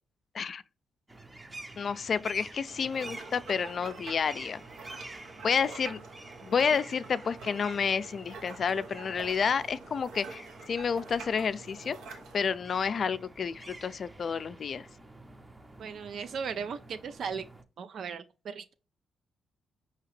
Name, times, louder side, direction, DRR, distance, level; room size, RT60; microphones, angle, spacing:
sound 1, 1.1-17.6, right 2 dB, 20° right, 0.7 m, -49 dB
voice 1, 1.8-4.6 5.4-6.0 6.4-14.9, left 6 dB, 50° left, 0.3 m, -30 dB
sound 2, 2.7-12.5, right 4 dB, 85° right, 0.9 m, -46 dB
voice 2, 15.8-17.4 17.8-18.7, right 6 dB, 65° right, 0.3 m, -37 dB
4.8 x 2.8 x 3.1 m
cardioid pair, 75°, 0 cm